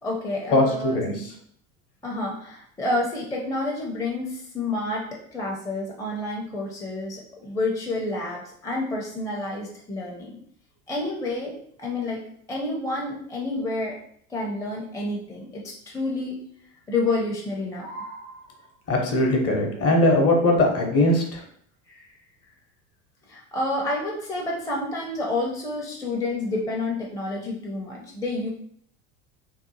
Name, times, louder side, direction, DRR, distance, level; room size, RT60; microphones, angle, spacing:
voice 1, 0.0-1.0 2.0-10.4 10.9-12.2 12.5-14.0 14.3-16.4 16.9-18.6 21.9-22.1 23.3-28.5, left 2 dB, 10° left, -2 dB, 0.5 m, -29 dB
voice 2, 0.5-1.2 18.9-21.4, left 1 dB, 35° left, 1 dB, 0.8 m, -20 dB
2.8 x 2.1 x 2.7 m, 0.63 s
hypercardioid pair, 80°, 41 cm